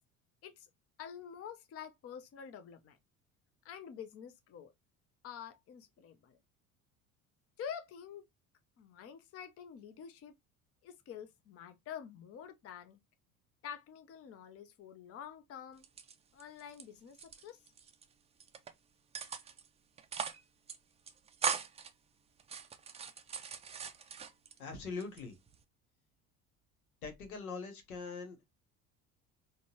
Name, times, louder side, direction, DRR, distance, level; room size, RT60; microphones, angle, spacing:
voice 1, 1.0-3.0 3.6-4.7 5.2-6.4 7.6-8.3 8.8-10.3 10.8-13.0 13.6-15.8 16.3-17.6, left 8 dB, 35° left, 0.6 m, -48 dB
sound 1, 15.8-16.8 17.1-18.0 18.4-18.7 19.1-19.7 20.0-20.4 20.7-20.8 21.1-21.9 22.4-24.6 25.0-25.6, right 7 dB, 15° right, 0.4 m, -40 dB
voice 2, 24.6-25.4 27.0-28.4, left 4 dB, 80° left, 1.0 m, -42 dB
3.8 x 2.2 x 2.8 m
figure-of-eight pair, 65°, 43 cm